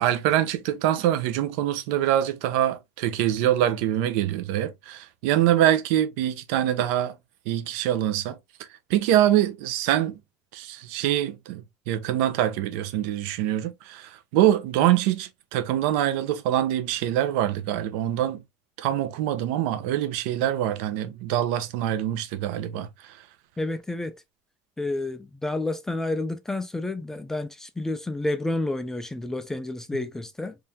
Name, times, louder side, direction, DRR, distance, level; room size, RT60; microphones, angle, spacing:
voice 1, 0.0-7.2 7.5-8.4 8.9-10.2 10.5-18.4 18.8-23.1, right 12 dB, 75° right, 0.8 m, -24 dB
voice 2, 23.6-24.1 24.8-30.6, left 2 dB, 5° left, 0.3 m, -30 dB
3.6 x 3.2 x 2.7 m
cardioid pair, 165°, 7 cm